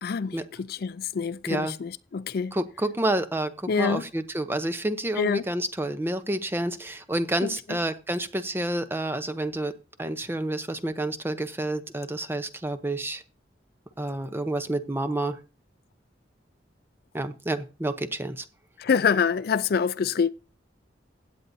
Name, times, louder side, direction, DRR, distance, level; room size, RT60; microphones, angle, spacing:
voice 1, 0.0-2.6 3.7-4.0 5.2-5.4 7.4-7.5 18.8-20.3, left 6 dB, 55° left, 0.4 m, -26 dB
voice 2, 2.5-9.7 10.0-13.2 14.0-15.4 17.1-18.4, right 1 dB, 15° right, 0.7 m, -29 dB
16.0 x 8.9 x 2.7 m
head